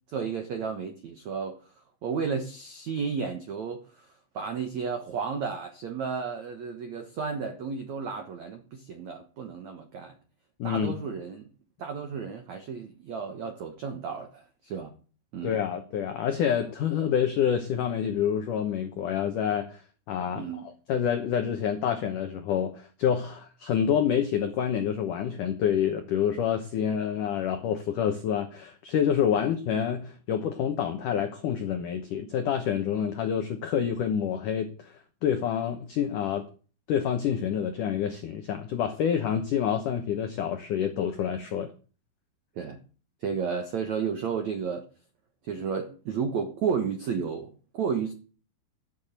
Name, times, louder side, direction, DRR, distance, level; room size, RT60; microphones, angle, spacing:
voice 1, 0.1-1.6 2.0-3.8 4.3-10.1 10.6-11.5 11.8-14.9 15.3-15.6 20.3-20.7 29.3-29.4 42.5-42.8 43.2-44.8 45.4-48.1, right 6 dB, 80° right, 1.6 m, -32 dB
voice 2, 10.6-11.0 15.4-19.8 20.1-34.9 35.2-36.5 36.9-41.7, left 8 dB, 85° left, 1.8 m, -27 dB
13.0 x 7.3 x 8.1 m
omnidirectional pair, 5.5 m